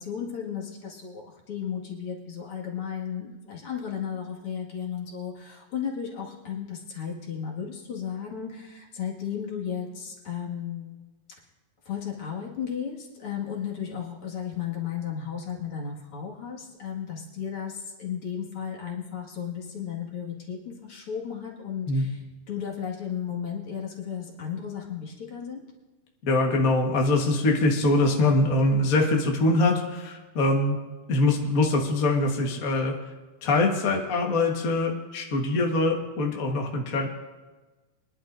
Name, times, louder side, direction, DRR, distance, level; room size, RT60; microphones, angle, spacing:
voice 1, 0.0-11.0 11.9-25.6, left 8 dB, 45° left, -3 dB, 2.5 m, -34 dB
voice 2, 26.2-30.8 31.1-33.0 33.4-37.1, left 2 dB, 60° left, 0 dB, 0.8 m, -23 dB
24.0 x 11.0 x 2.6 m, 1.2 s
omnidirectional pair, 3.9 m